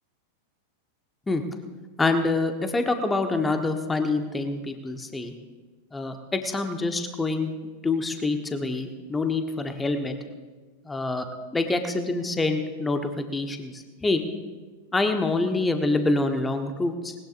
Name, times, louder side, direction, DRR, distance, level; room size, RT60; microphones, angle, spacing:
voice 1, 2.0-5.3 5.9-7.5 7.8-10.2 10.8-11.3 11.5-14.2 14.9-17.1, left 3 dB, 10° left, 6 dB, 1.2 m, -26 dB
20.0 x 18.5 x 2.6 m, 1.3 s
figure-of-eight pair, 90°, 0 cm